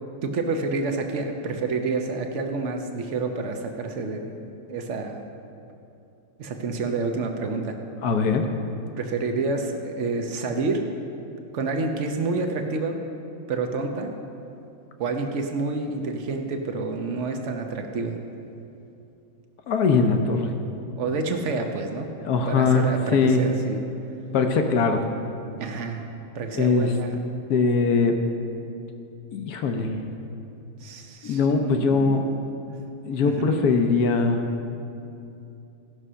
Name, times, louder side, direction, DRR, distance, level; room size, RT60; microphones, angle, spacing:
voice 1, 0.2-4.4 4.7-5.2 6.4-7.8 9.0-10.9 11.5-13.0 13.5-14.1 15.0-18.2 21.0-22.1 22.5-23.8 25.6-26.1 26.3-27.2 30.8-32.3 32.7-32.8 33.2-33.5, right 3 dB, 70° right, 4 dB, 0.7 m, -28 dB
voice 2, 8.0-8.5 19.7-20.5 22.2-23.4 24.3-25.0 26.6-26.9 27.5-28.2 29.3-29.9 31.2-32.3 33.1-34.4, left 4 dB, 65° left, 5 dB, 1.0 m, -21 dB
15.5 x 6.2 x 5.6 m, 2.8 s
omnidirectional pair, 2.3 m